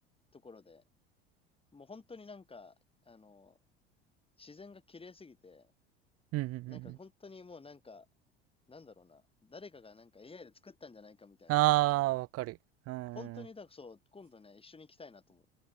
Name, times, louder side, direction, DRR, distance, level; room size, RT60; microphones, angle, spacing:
voice 1, 0.3-0.8 1.7-2.7 3.0-3.6 4.4-5.7 6.7-8.1 8.7-11.7 13.1-15.4, left 4 dB, 15° left, 3.4 m, -51 dB
voice 2, 6.3-7.0 11.5-12.6 12.9-13.5, right 19 dB, 50° right, 1.0 m, -30 dB
open air
figure-of-eight pair, 70°, 32 cm